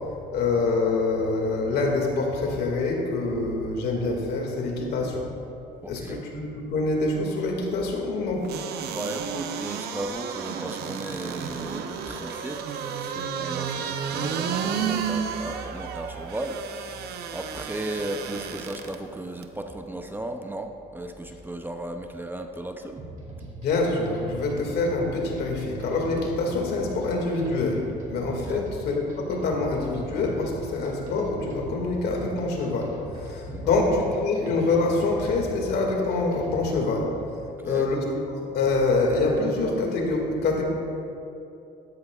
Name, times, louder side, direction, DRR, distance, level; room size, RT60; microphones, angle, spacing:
voice 1, 0.3-5.3 5.9-8.5 23.6-37.1 37.6-40.6, left 3 dB, 70° left, 0 dB, 2.1 m, -25 dB
voice 2, 5.8-6.2 8.8-17.1 17.3-23.0 28.5-28.6 33.5-33.7 37.6-37.9, right 1 dB, 10° right, 5 dB, 0.6 m, -35 dB
sound 1, 8.4-19.0 19.4-19.5, right 7 dB, 75° right, 0.8 m, -32 dB
sound 2, 23.0-36.9, right 2 dB, 50° right, 2.3 m, -41 dB
13.0 x 12.5 x 2.4 m, 2.7 s
cardioid pair, 110°, 17 cm